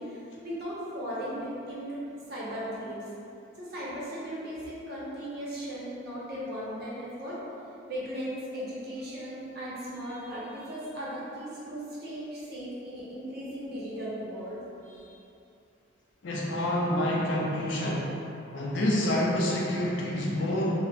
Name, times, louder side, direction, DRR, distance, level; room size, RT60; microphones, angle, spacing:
voice 1, 0.0-2.0 2.3-3.0 3.5-7.4 7.9-15.1, equal, 50° right, -8 dB, 0.7 m, -37 dB
voice 2, 16.2-18.1 18.5-20.7, left 1 dB, 60° left, -3 dB, 0.5 m, -27 dB
3.8 x 2.1 x 2.3 m, 2.7 s
head